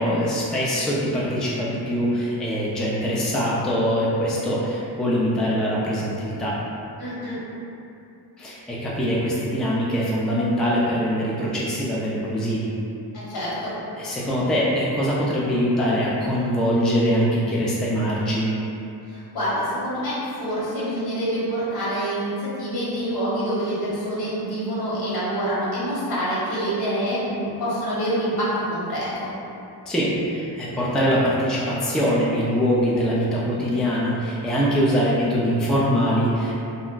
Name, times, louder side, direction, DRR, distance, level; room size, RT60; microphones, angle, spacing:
voice 1, 0.0-6.5 8.4-12.7 14.0-18.5 29.9-36.5, equal, ahead, -6 dB, 0.4 m, -23 dB
voice 2, 7.0-7.4 13.1-13.7 19.1-29.3, equal, 65° left, -9 dB, 1.3 m, -26 dB
2.5 x 2.1 x 3.8 m, 2.7 s
cardioid pair, 85°, 41 cm